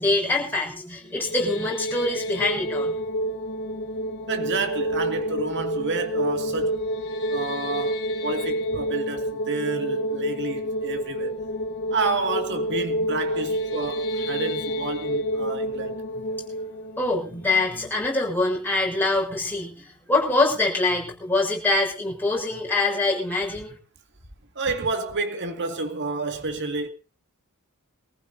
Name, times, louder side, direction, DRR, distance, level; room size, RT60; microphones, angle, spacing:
voice 1, 0.0-2.9 17.0-23.7, left 2 dB, 10° left, 6.8 m, -24 dB
sound 1, 1.0-18.2, equal, 50° left, 3.5 m, -29 dB
voice 2, 4.3-6.8 7.3-11.4 11.9-16.0 24.6-26.9, right 3 dB, 55° right, 2.2 m, -29 dB
24.5 x 15.0 x 2.8 m
head